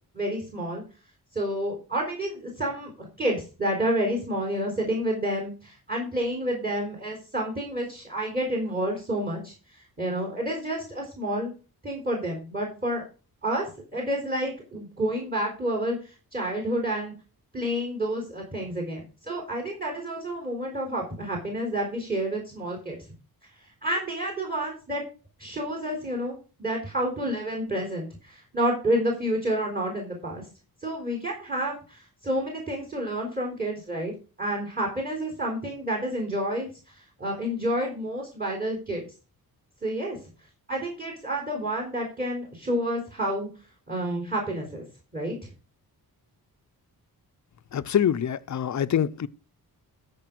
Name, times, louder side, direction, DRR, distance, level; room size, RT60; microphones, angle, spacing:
voice 1, 0.1-0.8 1.3-11.5 11.8-13.1 13.4-17.1 17.5-23.0 23.8-25.0 25.4-30.5 30.8-34.1 34.4-39.1 39.8-40.3 40.7-43.5 43.9-44.8 45.1-45.5, right 1 dB, 25° right, 3.9 m, -29 dB
voice 2, 47.7-49.3, left 9 dB, 50° left, 0.6 m, -25 dB
13.0 x 5.2 x 6.1 m
wide cardioid pair, 120°, 37 cm